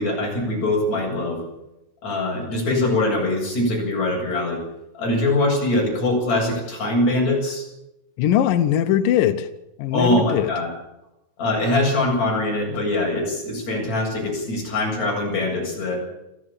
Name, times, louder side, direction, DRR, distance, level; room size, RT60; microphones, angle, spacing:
voice 1, 0.0-1.4 2.0-4.6 4.9-7.7 9.9-10.7 11.4-16.0, left 2 dB, 35° left, -1 dB, 8.9 m, -22 dB
voice 2, 8.2-9.5 9.8-10.5, left 10 dB, 85° left, 9 dB, 1.9 m, -20 dB
25.0 x 15.0 x 8.5 m, 0.90 s
omnidirectional pair, 5.5 m